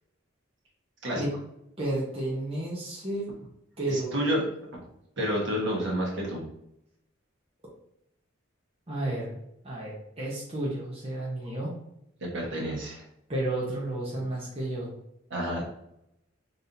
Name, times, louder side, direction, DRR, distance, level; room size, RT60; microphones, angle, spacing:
voice 1, 1.8-3.3 3.8-4.2 8.9-9.4 9.6-11.7 13.3-14.9, right 1 dB, 30° right, -5 dB, 0.9 m, -32 dB
voice 2, 3.9-4.4 5.2-6.4 12.2-13.0 15.3-15.7, equal, 65° right, -3 dB, 1.4 m, -29 dB
4.1 x 3.5 x 2.7 m, 0.79 s
head